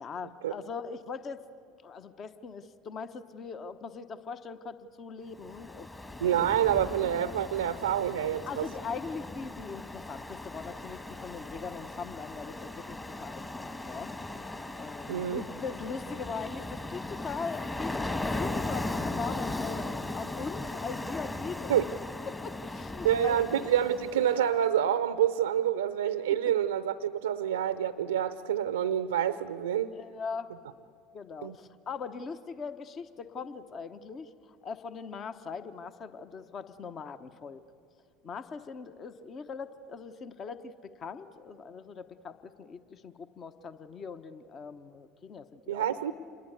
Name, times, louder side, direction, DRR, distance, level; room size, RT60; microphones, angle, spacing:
voice 1, 0.0-1.4 1.8-6.1 8.5-14.1 14.8-21.8 22.2-23.4 29.9-30.5 31.1-37.6 38.2-45.9, left 5 dB, 35° left, 12 dB, 1.0 m, -41 dB
Ocean, 5.4-24.5, left 2 dB, 15° left, 1.6 m, -38 dB
voice 2, 6.2-8.7 15.1-15.4 21.7-21.8 23.0-29.9 31.4-31.6 45.7-46.1, right 10 dB, 75° right, 14 dB, 0.6 m, -27 dB
27.5 x 21.0 x 8.2 m, 2.7 s
figure-of-eight pair, 65°, 0 cm